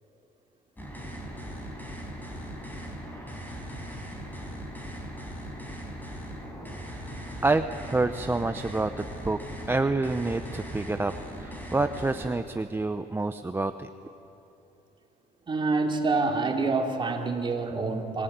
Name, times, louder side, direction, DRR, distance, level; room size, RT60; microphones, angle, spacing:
sound 1, 0.8-12.3, equal, 10° left, 5.3 m, -39 dB
voice 1, 7.4-8.9 9.2-9.4 9.7-13.9, right 2 dB, 15° right, 9 dB, 0.7 m, -27 dB
voice 2, 15.5-18.2, right 3 dB, 30° right, 3 dB, 2.9 m, -27 dB
25.5 x 17.5 x 9.4 m, 2.9 s
cardioid pair, 110°, 17 cm